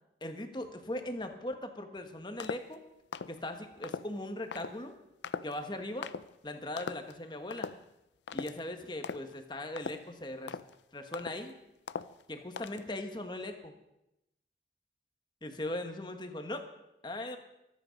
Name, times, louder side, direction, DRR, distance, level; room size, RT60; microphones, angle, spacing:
voice 1, 0.2-2.8 3.3-5.0 5.4-6.1 6.4-7.7 8.3-10.6 10.9-11.5 12.3-13.7 15.4-16.7 17.0-17.4, left 1 dB, 25° left, 6 dB, 1.4 m, -39 dB
sound 1, 2.4-2.8 3.1-3.4 3.8-4.1 4.5-4.8 5.2-5.6 6.0-6.3 6.8-7.1 7.5-7.8 8.3-8.6 9.0-9.3 9.8-10.1 10.5-10.8 11.1-11.5 11.9-12.2 12.6-12.9, left 5 dB, 85° left, 0.5 m, -39 dB
24.0 x 9.2 x 5.2 m, 0.89 s
head